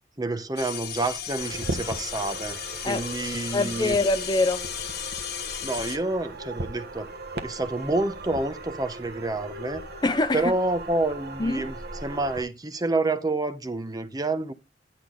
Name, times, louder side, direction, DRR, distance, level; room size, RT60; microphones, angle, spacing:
voice 1, 0.2-4.0 5.6-7.1 7.4-9.8 10.3-14.5, right 2 dB, 20° right, 0.8 m, -28 dB
sound 1, 0.6-6.0, left 9 dB, 60° left, 1.3 m, -35 dB
sound 2, 1.4-12.4, right 2 dB, 60° right, 1.3 m, -38 dB
voice 2, 3.5-4.7 10.0-10.4 11.4-11.7, left 2 dB, 25° left, 0.5 m, -24 dB
10.5 x 6.3 x 3.9 m
head